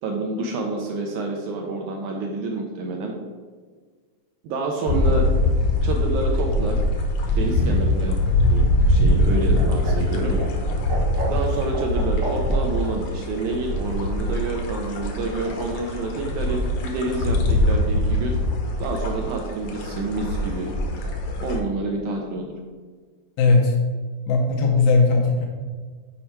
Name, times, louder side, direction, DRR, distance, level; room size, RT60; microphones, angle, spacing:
voice 1, 0.0-3.2 4.4-5.3 5.8-6.8 7.4-8.2 8.5-10.4 11.3-18.4 18.8-20.7 21.4-22.5, right 3 dB, 80° right, 1 dB, 1.8 m, -28 dB
sound 1, 4.9-21.6, left 1 dB, 70° left, 1.6 m, -23 dB
Laughter, 7.2-12.9 14.2-14.9, right 2 dB, 55° right, 0.8 m, -34 dB
voice 2, 23.4-23.7 24.3-25.5, left 3 dB, 90° left, 0 dB, 2.7 m, -18 dB
7.1 x 5.3 x 4.4 m, 1.5 s
omnidirectional pair, 4.2 m